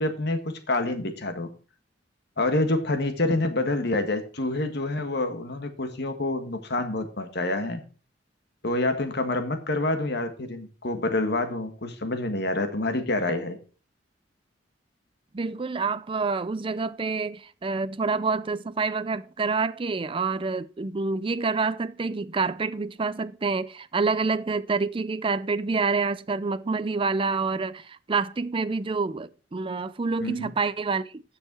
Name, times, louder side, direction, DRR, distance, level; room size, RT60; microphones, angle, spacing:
voice 1, 0.0-1.5 2.4-7.8 8.6-13.6 30.2-30.5, left 2 dB, 60° left, 1.6 m, -27 dB
voice 2, 15.3-31.2, right 4 dB, 30° right, 0.4 m, -27 dB
9.4 x 6.6 x 6.1 m
head